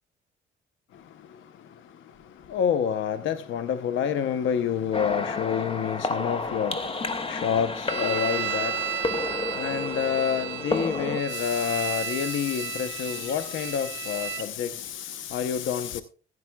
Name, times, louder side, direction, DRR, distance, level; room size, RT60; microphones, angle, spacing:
voice 1, 2.5-16.0, left 8 dB, 75° left, 0.8 m, -28 dB
sound 1, 4.9-11.2, left 3 dB, 30° left, 1.2 m, -31 dB
sound 2, 7.9-14.5, right 10 dB, 70° right, 1.3 m, -33 dB
15.5 x 11.0 x 2.3 m
cardioid pair, 90°, 20 cm